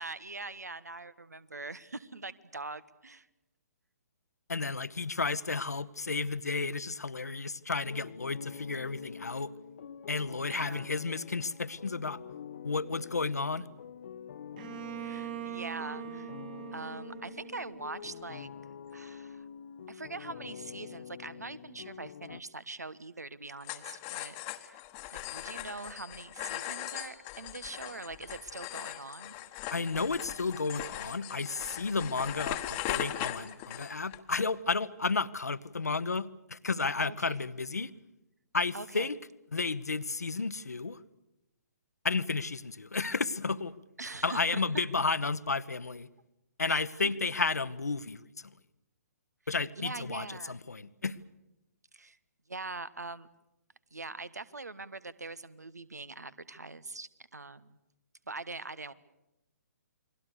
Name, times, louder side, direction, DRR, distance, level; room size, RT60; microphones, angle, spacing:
voice 1, 0.0-3.3 10.4-10.9 15.0-16.3 16.7-18.5 18.9-19.5 19.9-24.8 25.1-29.4 37.0-37.4 38.7-39.1 44.0-44.6 46.7-47.1 49.8-50.6 51.9-52.2 52.5-53.3 53.9-57.8 58.3-58.9, right 3 dB, 75° right, 18 dB, 1.3 m, -43 dB
voice 2, 4.5-9.5 10.1-12.2 12.6-13.7 29.7-37.9 38.5-39.2 39.5-41.0 42.0-43.7 44.2-46.1 46.6-48.5 49.5-51.1, left 4 dB, 70° left, 15 dB, 1.0 m, -32 dB
sound 1, 7.8-22.4, left 7 dB, 45° left, 0.8 m, -47 dB
Bowed string instrument, 14.6-18.3, right 12 dB, 35° right, 2.0 m, -42 dB
sound 2, 23.6-34.2, left 15 dB, 25° left, 1.2 m, -39 dB
29.0 x 21.5 x 6.8 m, 0.93 s
figure-of-eight pair, 130°, 9 cm